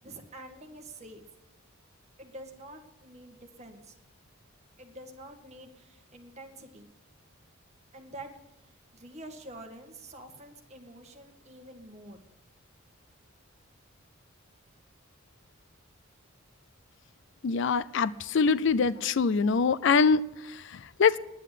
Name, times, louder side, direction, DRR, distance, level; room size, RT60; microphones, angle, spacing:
voice 1, 0.0-1.2 2.2-3.9 4.8-6.9 7.9-8.3 8.6-12.2, right 1 dB, 30° right, 3 dB, 1.8 m, -47 dB
voice 2, 17.4-21.2, left 5 dB, 60° left, 17 dB, 0.4 m, -24 dB
10.5 x 9.2 x 9.9 m, 0.92 s
head